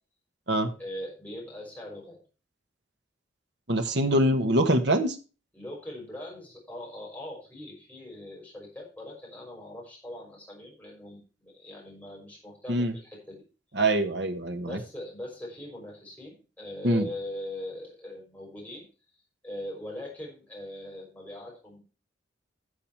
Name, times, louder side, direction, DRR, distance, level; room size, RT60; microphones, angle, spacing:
voice 1, 0.8-2.2 5.5-13.4 14.6-18.9 19.4-21.8, left 1 dB, 10° left, -3 dB, 5.8 m, -41 dB
voice 2, 3.7-5.2 12.7-12.9 13.7-14.8 16.8-17.1, right 1 dB, 65° right, 6 dB, 1.4 m, -24 dB
13.0 x 6.9 x 4.6 m, 0.34 s
head